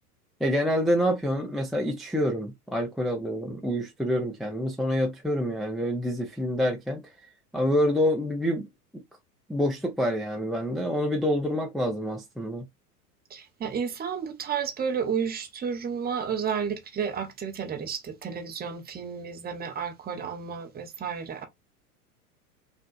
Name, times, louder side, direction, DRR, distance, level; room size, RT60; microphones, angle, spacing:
voice 1, 0.4-7.0 7.5-8.7 9.5-12.7, equal, ahead, 0.5 m, -27 dB
voice 2, 13.3-21.5, right 7 dB, 20° right, 1.0 m, -32 dB
5.4 x 2.6 x 2.5 m
figure-of-eight pair, 90°, 45 cm